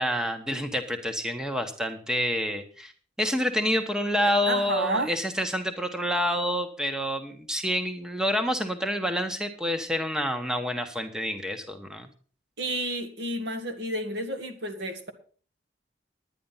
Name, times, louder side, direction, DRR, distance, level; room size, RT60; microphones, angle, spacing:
voice 1, 0.0-2.9 3.2-12.1, equal, 5° right, 7 dB, 1.1 m, -28 dB
voice 2, 4.5-5.1 12.6-15.1, right 1 dB, 65° right, 6 dB, 1.7 m, -30 dB
10.5 x 10.0 x 5.6 m, 0.41 s
head